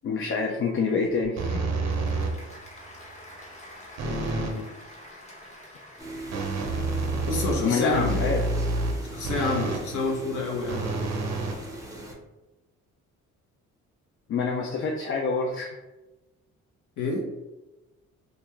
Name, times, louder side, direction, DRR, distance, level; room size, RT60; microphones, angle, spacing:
voice 1, 0.0-1.6 7.6-8.4 14.3-15.8, left 4 dB, 45° left, 0 dB, 0.4 m, -26 dB
Applause / Crowd, 1.2-7.5, left 1 dB, 25° left, 0.9 m, -48 dB
sound 1, 1.4-2.6 4.0-4.6 6.3-9.9 10.7-12.2, right 3 dB, 60° right, 0.6 m, -29 dB
voice 2, 4.0-4.7 7.3-8.3 9.0-11.3 17.0-17.3, left 2 dB, 80° left, 0 dB, 0.8 m, -29 dB
sound 2, 6.0-12.1, right 1 dB, 10° right, 0.5 m, -40 dB
2.4 x 2.2 x 3.0 m, 1.1 s
cardioid pair, 90°, 30 cm